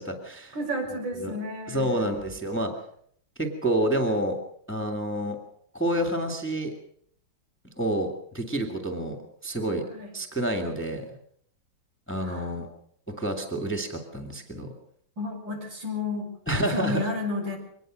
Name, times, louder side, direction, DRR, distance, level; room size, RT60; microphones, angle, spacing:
voice 1, 0.0-0.5 1.2-1.4 1.7-2.7 3.4-4.4 4.7-5.4 5.7-6.7 7.8-9.2 9.4-9.8 10.1-11.0 12.1-12.7 13.1-14.7 16.5-17.1, right 1 dB, 5° left, 2 dB, 2.4 m, -28 dB
voice 2, 0.5-2.2 9.9-10.1 12.2-12.5 15.2-16.3 16.7-17.6, left 2 dB, 65° right, 2 dB, 7.0 m, -32 dB
24.0 x 20.0 x 6.5 m, 0.65 s
omnidirectional pair, 2.2 m